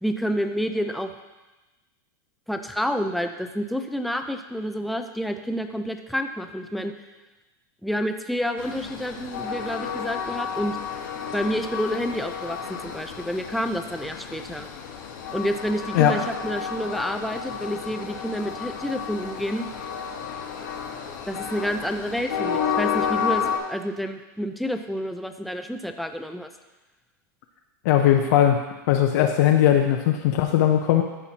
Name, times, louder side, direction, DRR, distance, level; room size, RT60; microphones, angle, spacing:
voice 1, 0.0-1.1 2.5-6.9 7.8-10.8 11.3-14.7 15.3-19.7 21.3-23.4 23.7-26.5, equal, ahead, 6 dB, 0.4 m, -29 dB
Train, 8.6-23.6, left 7 dB, 80° left, 1.4 m, -31 dB
voice 2, 27.8-28.6 28.9-31.0, left 11 dB, 60° left, 3 dB, 0.6 m, -19 dB
13.0 x 5.7 x 2.9 m, 1.1 s
supercardioid pair, 145°, 10 cm